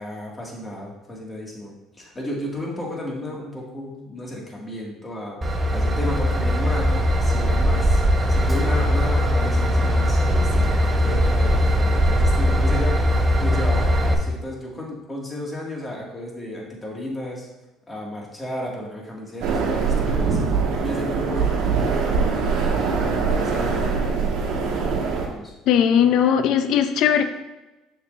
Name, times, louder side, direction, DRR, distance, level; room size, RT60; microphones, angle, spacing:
voice 1, 0.0-8.0 8.3-17.5 17.9-20.4 20.8-22.6 23.2-24.3 25.3-25.5, left 1 dB, 20° left, -2 dB, 2.2 m, -33 dB
Train / Engine, 5.4-14.1, equal, 20° right, 1.1 m, -20 dB
sound 1, 19.4-25.3, right 5 dB, 70° right, 1.3 m, -23 dB
voice 2, 25.7-27.2, left 8 dB, 65° left, 9 dB, 0.6 m, -18 dB
6.8 x 6.6 x 2.7 m, 1.1 s
supercardioid pair, 85°, 0 cm